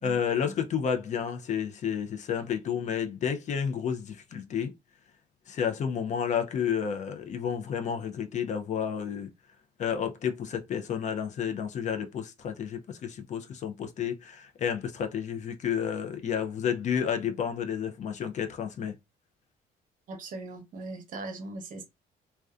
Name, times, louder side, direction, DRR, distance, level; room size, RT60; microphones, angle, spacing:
voice 1, 0.0-4.7 5.5-9.3 9.8-18.9, left 8 dB, 45° left, 0.5 m, -31 dB
voice 2, 20.1-21.8, right 2 dB, 55° right, 0.8 m, -39 dB
2.5 x 2.2 x 2.3 m
cardioid pair, 110°, 17 cm